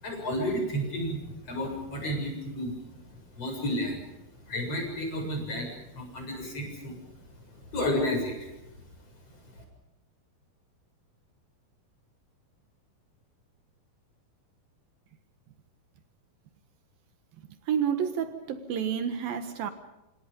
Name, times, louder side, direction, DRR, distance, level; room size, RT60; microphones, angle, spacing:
voice 1, 0.0-2.7 3.4-4.1 4.5-7.0 7.7-8.5 9.6-9.7, equal, 35° left, 2 dB, 8.2 m, -31 dB
voice 2, 17.7-19.7, right 8 dB, 70° right, 9 dB, 3.1 m, -29 dB
28.0 x 27.0 x 5.4 m, 0.96 s
omnidirectional pair, 4.5 m